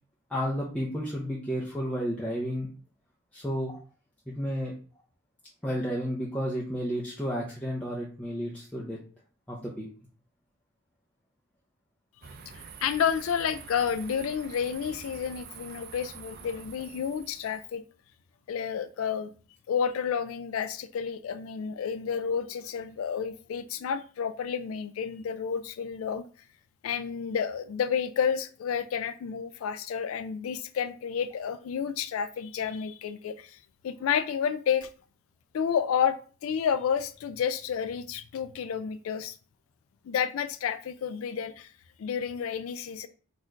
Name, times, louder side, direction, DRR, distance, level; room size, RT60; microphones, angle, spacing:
voice 1, 0.3-2.7 3.3-3.8 4.3-4.7 5.6-9.0 9.5-9.9, equal, 5° left, 0.7 m, -32 dB
sound 1, 12.2-17.7, right 6 dB, 50° right, 0.5 m, -46 dB
voice 2, 12.5-17.8 18.5-19.3 19.7-26.3 26.8-33.6 33.8-34.9 35.5-36.2 36.4-39.4 40.0-41.7 42.0-43.1, left 7 dB, 90° left, 0.3 m, -30 dB
4.3 x 2.5 x 4.5 m
head